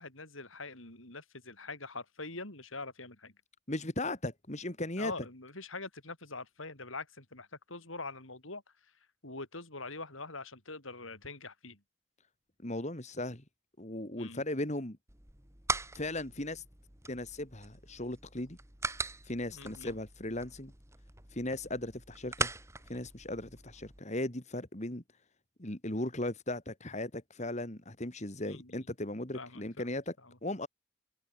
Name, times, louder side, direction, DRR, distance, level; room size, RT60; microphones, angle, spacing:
voice 1, 0.0-3.3 5.0-8.6 9.2-11.8 14.2-14.4 19.5-20.0 28.5-28.9 29.3-29.9 30.2-30.4, left 3 dB, 80° left, 7.1 m, -44 dB
voice 2, 3.7-5.1 12.6-13.4 13.8-15.0 15.9-16.6 17.1-18.6 19.2-20.7 21.3-22.5 22.9-25.0 25.6-30.1 30.4-30.7, left 1 dB, 35° left, 2.7 m, -37 dB
sound 1, 15.1-24.0, right 3 dB, 15° right, 3.3 m, -41 dB
head